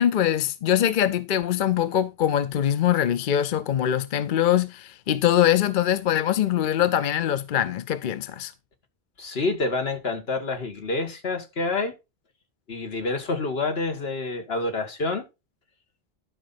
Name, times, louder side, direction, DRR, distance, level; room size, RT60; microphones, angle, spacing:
voice 1, 0.0-8.5, left 10 dB, 60° left, 0.7 m, -23 dB
voice 2, 9.2-11.9 12.7-15.2, left 3 dB, 75° left, 1.8 m, -28 dB
12.0 x 5.3 x 4.1 m
omnidirectional pair, 1.0 m